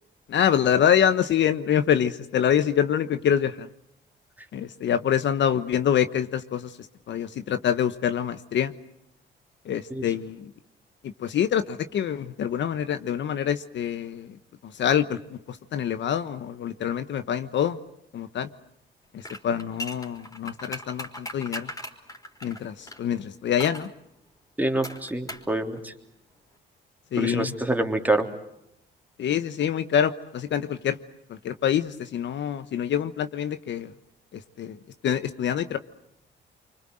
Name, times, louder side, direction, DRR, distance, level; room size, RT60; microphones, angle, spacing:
voice 1, 0.3-3.7 4.5-6.7 7.1-8.7 9.7-10.5 11.0-14.3 14.8-17.8 18.1-18.5 19.1-21.7 22.4-23.9 27.1-27.5 29.2-31.0 31.3-33.9 34.6-34.8 35.0-35.8, left 9 dB, 65° left, 11 dB, 1.3 m, -25 dB
sound 1, 19.2-23.0 23.6-23.9 24.8-25.5 25.8-25.9, left 1 dB, 15° left, 4.3 m, -38 dB
voice 2, 24.6-25.9 27.2-28.3, right 2 dB, 10° right, 4 dB, 3.3 m, -26 dB
25.5 x 25.0 x 7.8 m, 0.80 s
cardioid pair, 90°, 20 cm